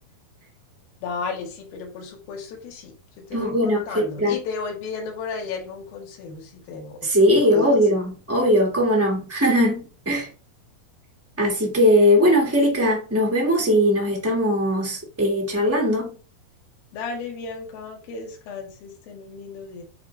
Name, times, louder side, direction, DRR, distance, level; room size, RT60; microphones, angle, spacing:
voice 1, 1.0-7.0 7.3-7.9 16.9-19.8, left 5 dB, 90° left, 3.3 m, -34 dB
voice 2, 3.3-4.4 7.0-10.3 11.4-16.1, equal, 20° right, 0.3 m, -20 dB
8.5 x 3.6 x 3.3 m
omnidirectional pair, 4.1 m